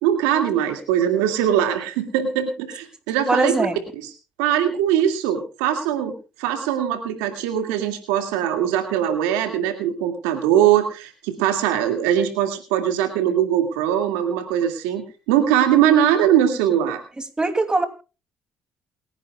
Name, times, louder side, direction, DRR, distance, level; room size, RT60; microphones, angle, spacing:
voice 1, 0.0-3.5 4.4-17.0, right 10 dB, 90° right, 6 dB, 2.3 m, -21 dB
voice 2, 3.3-3.8 17.4-17.8, right 2 dB, 15° right, 7 dB, 2.7 m, -20 dB
28.5 x 10.5 x 2.4 m, 0.33 s
supercardioid pair, 65°, 5 cm